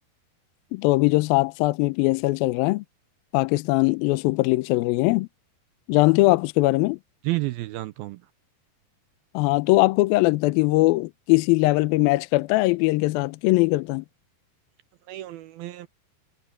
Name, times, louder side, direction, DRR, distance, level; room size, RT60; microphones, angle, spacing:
voice 1, 0.7-2.8 3.3-5.3 5.9-7.0 9.3-14.1, left 20 dB, 90° left, 2.1 m, -21 dB
voice 2, 7.2-8.2 15.1-15.9, right 18 dB, 80° right, 2.2 m, -30 dB
omnidirectional pair, 4.9 m